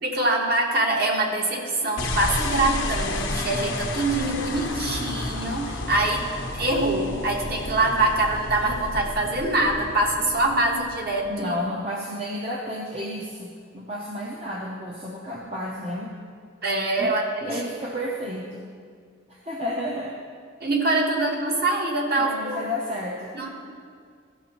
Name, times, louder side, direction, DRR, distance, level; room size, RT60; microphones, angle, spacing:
voice 1, 0.0-6.3 6.5-11.5 16.6-17.6 20.6-22.7 23.3-23.5, right 2 dB, 50° right, 0 dB, 1.1 m, -24 dB
sound 1, 2.0-11.4, left 2 dB, 80° left, 0.8 m, -31 dB
voice 2, 11.2-16.1 17.0-18.7 19.3-20.2 21.2-21.3 22.1-23.5, equal, 30° right, -2 dB, 0.6 m, -32 dB
13.5 x 6.0 x 2.9 m, 2.1 s
head